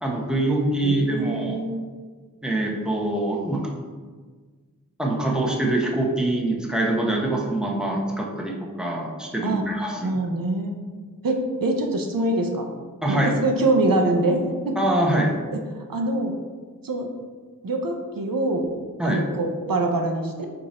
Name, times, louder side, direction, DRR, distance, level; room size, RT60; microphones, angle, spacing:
voice 1, 0.0-1.6 2.4-3.6 5.0-10.1 13.0-13.3 14.8-15.3 19.0-19.2, right 1 dB, ahead, -1 dB, 0.7 m, -24 dB
voice 2, 0.8-1.8 9.4-9.7 10.0-10.8 11.2-12.7 13.1-14.4 14.7-14.8 15.5-16.3 16.8-17.1 17.6-18.7 19.0-20.5, right 2 dB, 85° right, 3 dB, 0.6 m, -24 dB
4.7 x 2.6 x 4.1 m, 1.5 s
wide cardioid pair, 50°, 33 cm